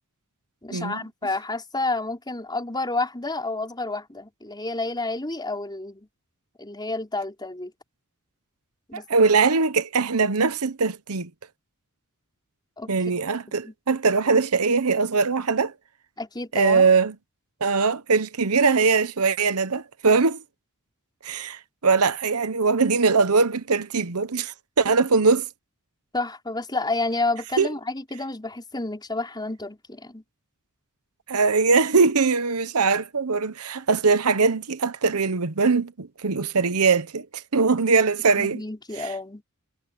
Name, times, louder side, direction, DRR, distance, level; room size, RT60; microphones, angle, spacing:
voice 1, 0.6-6.1 6.6-7.7 8.9-9.1 12.8-12.9 13.5-13.7 16.2-16.9 26.1-30.2 38.4-39.4, left 2 dB, 20° left, 4.8 m, -30 dB
voice 2, 8.9-11.3 12.9-15.7 16.5-17.1 17.6-20.4 21.2-25.4 27.6-27.7 31.3-38.6 39.0-39.1, right 4 dB, 75° right, 1.0 m, -21 dB
head